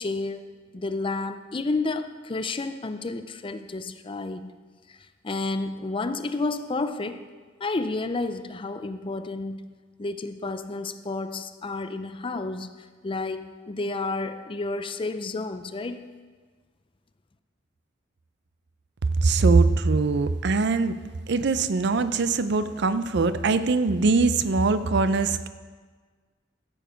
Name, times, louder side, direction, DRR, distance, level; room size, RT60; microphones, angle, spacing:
voice 1, 0.0-4.5 4.9-5.0 5.2-7.2 7.6-9.7 10.0-12.7 13.0-16.1, left 3 dB, 30° left, 10 dB, 0.5 m, -31 dB
voice 2, 19.2-20.9 21.3-25.5, right 3 dB, 65° right, 12 dB, 0.5 m, -22 dB
14.5 x 7.0 x 5.0 m, 1.5 s
head